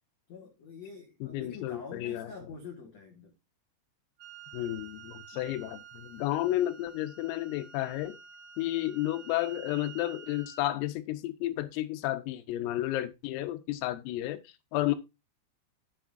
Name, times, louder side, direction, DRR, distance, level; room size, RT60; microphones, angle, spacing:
voice 1, 0.3-3.3 5.5-5.6, left 4 dB, 70° left, 1.6 m, -46 dB
voice 2, 1.2-2.3 4.5-8.2 8.6-15.0, left 15 dB, 85° left, 3.6 m, -32 dB
Wind instrument woodwind instrument, 4.2-10.8, right 6 dB, 40° right, 3.2 m, -50 dB
13.5 x 8.2 x 2.6 m
omnidirectional pair, 5.9 m